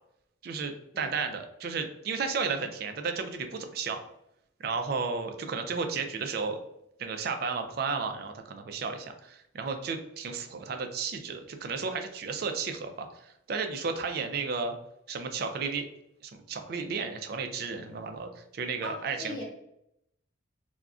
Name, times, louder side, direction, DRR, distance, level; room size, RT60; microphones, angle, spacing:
voice 1, 0.4-4.0 4.6-6.6 7.0-14.7 15.1-15.9 16.2-19.4, right 5 dB, 50° right, 6 dB, 0.3 m, -33 dB
voice 2, 18.8-19.4, left 1 dB, 15° left, -7 dB, 0.5 m, -39 dB
2.3 x 2.1 x 3.6 m, 0.79 s
head